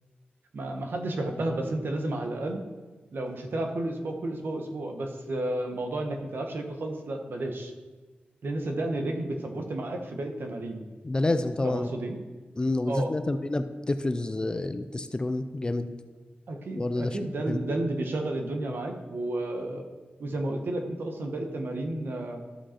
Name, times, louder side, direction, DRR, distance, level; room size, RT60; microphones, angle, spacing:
voice 1, 0.5-2.6 3.1-7.7 8.4-10.8 11.6-12.2 12.9-13.1 16.5-19.8 20.2-22.4, right 1 dB, 70° right, 4 dB, 1.0 m, -32 dB
voice 2, 11.0-11.9 12.6-15.9 16.8-17.6, left 2 dB, 25° left, 10 dB, 0.4 m, -28 dB
13.5 x 5.1 x 4.3 m, 1.3 s
wide cardioid pair, 145°, 4 cm